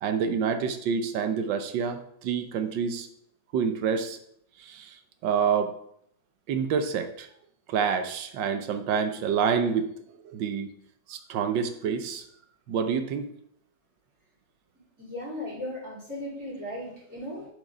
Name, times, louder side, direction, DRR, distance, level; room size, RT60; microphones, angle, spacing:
voice 1, 0.0-3.1 3.5-4.2 4.6-4.9 5.2-5.7 6.5-7.3 7.7-9.9 10.2-10.7 11.1-12.2 12.7-13.3, right 6 dB, 90° right, 9 dB, 1.5 m, -27 dB
voice 2, 15.0-17.5, left 1 dB, 10° right, -10 dB, 3.3 m, -36 dB
7.4 x 5.3 x 5.0 m, 0.70 s
omnidirectional pair, 1.9 m